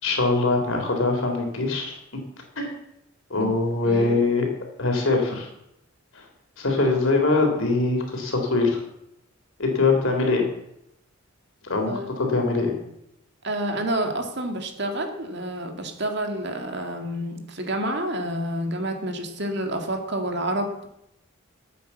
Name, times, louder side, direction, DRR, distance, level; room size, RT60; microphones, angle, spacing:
voice 1, 0.0-2.0 2.6-2.7 3.3-4.4 4.8-5.5 6.1-6.2 6.6-8.8 9.6-10.5 11.6-12.7, left 3 dB, 65° left, 3 dB, 3.4 m, -22 dB
voice 2, 3.8-4.2 11.9-12.1 13.4-20.9, right 1 dB, 50° right, 4 dB, 2.1 m, -29 dB
14.5 x 8.6 x 7.1 m, 0.81 s
head